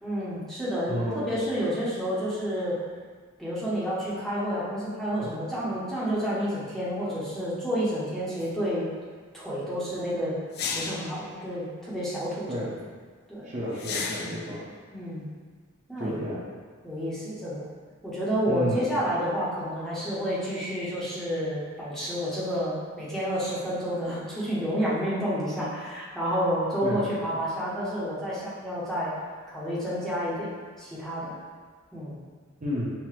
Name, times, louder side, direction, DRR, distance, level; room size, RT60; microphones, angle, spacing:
voice 1, 0.0-2.8 3.4-8.9 9.3-10.4 10.7-12.5 13.3-13.5 14.9-15.3 15.9-16.2 16.8-17.6 18.0-29.1 29.5-31.3 31.9-32.2, equal, ahead, -9 dB, 0.8 m, -30 dB
voice 2, 0.9-1.3 5.2-5.3 12.5-12.7 13.4-14.6 16.0-16.4 18.5-18.8 26.8-27.0 32.6-32.9, equal, 35° right, -6 dB, 0.8 m, -31 dB
sound 1, 8.4-8.5 10.5-11.2 13.8-14.5, left 5 dB, 50° left, 0.3 m, -33 dB
5.6 x 2.1 x 3.1 m, 1.6 s
head